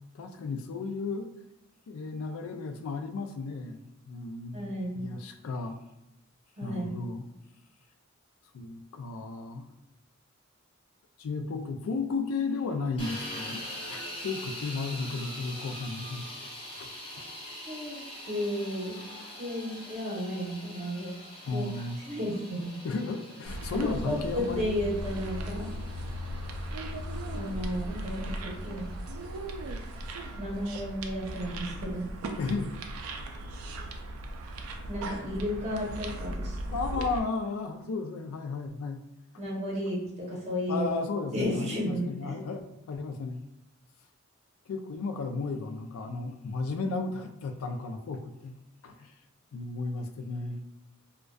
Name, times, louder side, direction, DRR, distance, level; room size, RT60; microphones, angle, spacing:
voice 1, 0.1-1.3 1.9-5.8 6.6-7.3 8.5-9.7 11.2-16.5 16.8-16.9 21.5-22.0 22.8-24.7 32.4-32.8 36.7-39.0 40.7-42.6 42.9-43.4 44.7-48.5 48.8-49.1 49.5-50.6, left 4 dB, 75° left, 6 dB, 0.3 m, -34 dB
voice 2, 4.5-5.1 6.6-6.9 17.7-18.0 18.2-19.0 19.4-21.1 21.5-21.7 22.1-22.7 23.8-25.7 27.3-28.9 30.4-32.1 34.9-36.6 39.4-41.0 41.3-42.3, equal, 30° right, -4 dB, 0.7 m, -33 dB
sound 1, 13.0-30.9, equal, 25° left, 0.5 m, -44 dB
sound 2, 23.4-37.2, right 1 dB, 85° right, 0.3 m, -37 dB
2.5 x 2.2 x 2.2 m, 0.93 s
head